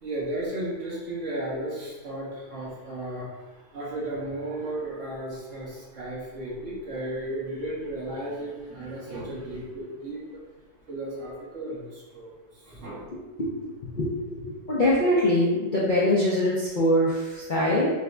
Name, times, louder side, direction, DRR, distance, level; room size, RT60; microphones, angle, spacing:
voice 1, 0.0-10.4 10.9-13.1, right 1 dB, 50° right, -6 dB, 1.3 m, -34 dB
voice 2, 13.9-17.9, left 1 dB, 85° left, -7 dB, 0.4 m, -23 dB
6.2 x 2.7 x 2.3 m, 1.2 s
omnidirectional pair, 1.9 m